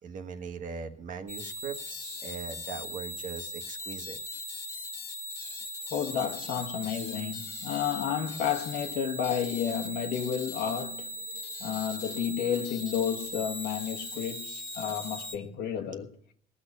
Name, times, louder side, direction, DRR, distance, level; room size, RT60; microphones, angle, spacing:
voice 1, 0.0-4.2, right 5 dB, 50° right, 1.4 m, -40 dB
sound 1, 1.3-15.4, left 1 dB, 15° left, 1.8 m, -39 dB
voice 2, 5.9-11.1 11.6-16.2, left 8 dB, 75° left, 1.5 m, -31 dB
18.0 x 6.6 x 6.7 m
cardioid pair, 110°, 17 cm